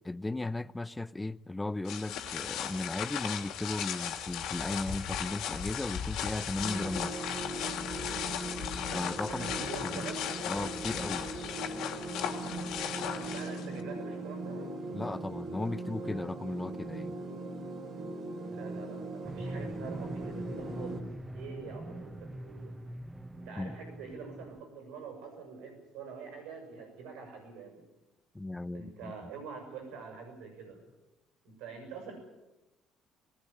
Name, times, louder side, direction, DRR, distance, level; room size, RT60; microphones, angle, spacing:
voice 1, 0.0-7.1 8.9-9.5 9.8-10.1 10.5-11.2 14.9-17.2 23.6-23.7 28.3-29.1, left 2 dB, 15° left, 0.8 m, -36 dB
sound 1, 1.8-13.8, left 9 dB, 70° left, 2.7 m, -36 dB
sound 2, 6.6-21.0, right 2 dB, 55° right, 4.0 m, -39 dB
voice 2, 9.3-10.2 13.2-14.7 18.5-22.7 23.3-27.9 28.7-30.8 31.4-32.2, right 5 dB, 75° right, 7.0 m, -45 dB
sound 3, 19.2-24.6, right 1 dB, 15° right, 1.5 m, -43 dB
19.5 x 19.5 x 9.7 m
hypercardioid pair, 55°, 0 cm